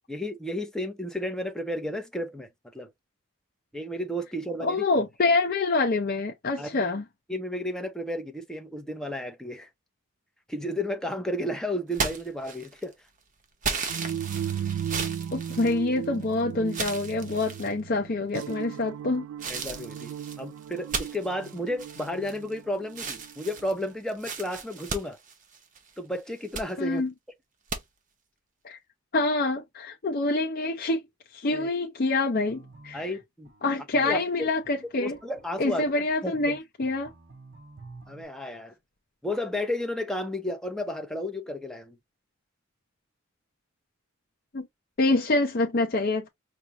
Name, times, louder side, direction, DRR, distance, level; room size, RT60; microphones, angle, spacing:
voice 1, 0.1-2.5 2.7-2.9 3.7-4.8 6.6-6.7 7.3-9.7 10.5-12.9 19.5-25.2 26.0-27.0 31.5-31.7 32.9-33.5 34.0-34.5 35.0-36.0 36.2-36.5 38.1-38.7 39.2-42.0, left 1 dB, 5° left, 0.7 m, -32 dB
voice 2, 4.6-7.0 15.3-19.3 26.8-27.1 28.6-28.8 29.1-31.0 31.3-33.1 33.6-35.2 35.6-37.1 44.5-44.7 45.0-46.3, left 2 dB, 45° left, 0.6 m, -26 dB
sound 1, 11.9-12.9 13.6-16.2 16.7-17.7 18.3-18.8 19.4-22.6 22.9-25.9 26.3-26.7 27.7-27.8, right 5 dB, 40° right, 0.8 m, -35 dB
sound 2, 13.9-23.8, right 9 dB, 80° right, 0.3 m, -36 dB
sound 3, 32.5-38.2, right 3 dB, 55° right, 1.2 m, -51 dB
5.0 x 2.4 x 2.8 m
head